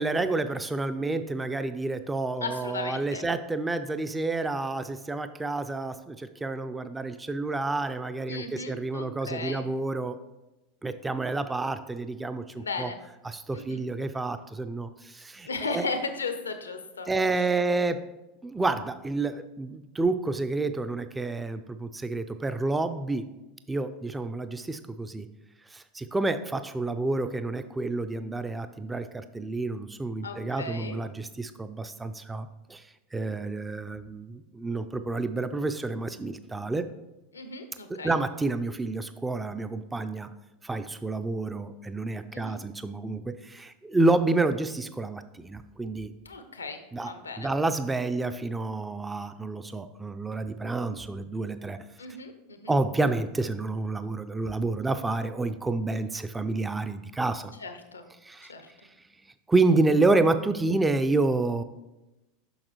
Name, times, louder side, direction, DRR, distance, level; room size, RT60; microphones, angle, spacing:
voice 1, 0.0-10.2 10.8-12.9 13.2-15.9 17.1-18.0 18.4-23.3 23.7-25.3 25.7-32.9 33.1-36.9 37.9-40.3 40.6-46.1 46.9-51.8 52.7-57.5 58.2-58.5 59.5-61.6, right 3 dB, 15° right, 10 dB, 0.4 m, -29 dB
voice 2, 2.4-3.2 8.3-9.7 12.6-13.0 13.5-13.8 15.4-17.5 30.2-31.0 37.3-38.2 42.3-42.6 46.2-47.5 52.0-52.7 57.6-58.0 58.4-58.7, left 3 dB, 90° left, 8 dB, 0.7 m, -36 dB
6.3 x 6.0 x 3.1 m, 0.99 s
hypercardioid pair, 85°, 0 cm